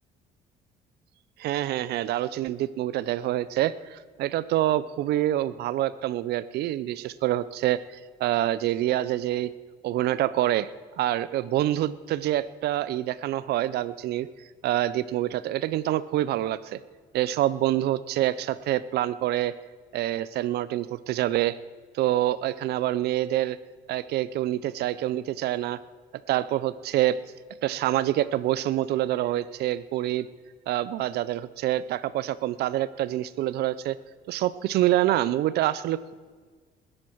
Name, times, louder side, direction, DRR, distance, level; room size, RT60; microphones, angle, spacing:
voice 1, 1.4-9.5 9.8-10.7 11.0-14.3 14.6-16.8 17.1-19.5 19.9-21.6 21.9-23.6 23.9-25.8 26.3-27.2 27.6-30.3 30.7-34.0 34.3-36.1, right 14 dB, 75° right, 17 dB, 0.6 m, -26 dB
20.5 x 11.0 x 4.6 m, 1.5 s
cardioid pair, 110°, 17 cm